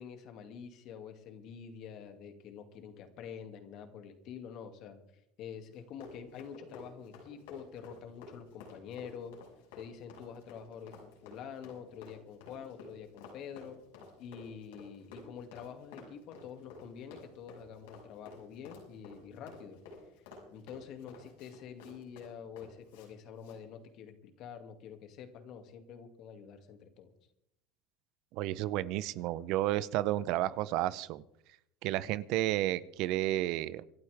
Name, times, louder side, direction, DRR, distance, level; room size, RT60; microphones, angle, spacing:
voice 1, 0.0-5.0 5.4-9.4 9.7-13.8 14.2-19.8 20.5-27.1, left 7 dB, 55° left, 6 dB, 2.4 m, -47 dB
Run, 5.7-23.1 23.4-23.6, left 4 dB, 85° left, 6.3 m, -52 dB
voice 2, 28.3-31.2 31.8-33.8, right 14 dB, 65° right, 17 dB, 0.8 m, -32 dB
25.5 x 12.0 x 3.6 m, 0.77 s
supercardioid pair, 110°, 0 cm